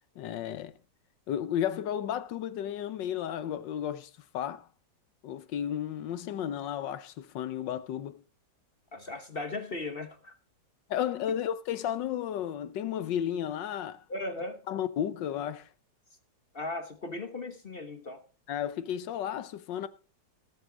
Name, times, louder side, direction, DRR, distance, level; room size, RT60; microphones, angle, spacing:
voice 1, 0.2-0.7 1.3-4.7 5.2-8.2 10.9-14.0 14.7-15.7 18.5-19.9, left 10 dB, 75° left, 1.4 m, -33 dB
voice 2, 8.9-10.3 11.3-11.4 14.1-14.6 16.5-18.2, left 2 dB, 35° left, 1.0 m, -37 dB
18.5 x 7.9 x 3.8 m
omnidirectional pair, 2.0 m